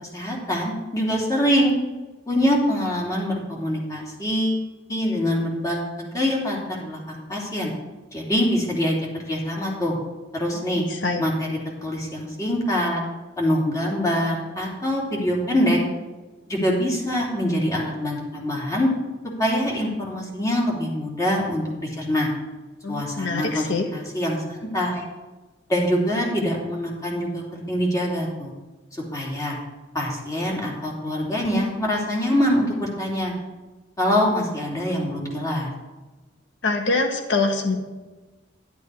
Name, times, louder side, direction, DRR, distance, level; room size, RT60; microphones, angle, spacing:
voice 1, 0.0-1.7 2.3-4.6 4.9-7.7 8.1-9.0 9.3-10.0 10.3-10.8 11.2-11.5 11.8-13.0 13.4-15.8 16.5-18.9 19.4-22.3 22.9-25.0 25.7-28.5 28.9-29.6 29.9-33.3 34.0-35.7, equal, 20° left, -2 dB, 3.2 m, -24 dB
voice 2, 10.5-11.2 22.8-23.9 36.6-37.8, left 3 dB, 90° left, 4 dB, 1.5 m, -25 dB
11.5 x 11.0 x 4.8 m, 1.2 s
head